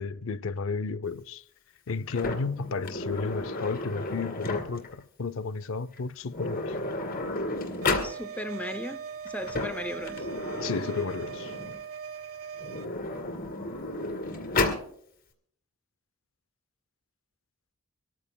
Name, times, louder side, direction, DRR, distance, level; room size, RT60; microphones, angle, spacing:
voice 1, 0.0-1.4 1.9-6.8 10.6-11.5, left 4 dB, 65° left, 0.5 m, -32 dB
Sliding door, 2.1-5.0 5.9-6.0 6.3-8.2 9.3-11.8 12.6-14.9, left 2 dB, 45° left, 2.2 m, -32 dB
sound 1, 7.8-12.9, right 7 dB, 75° right, 0.7 m, -40 dB
voice 2, 8.0-10.3, left 1 dB, 5° left, 0.5 m, -37 dB
24.5 x 13.5 x 2.2 m
head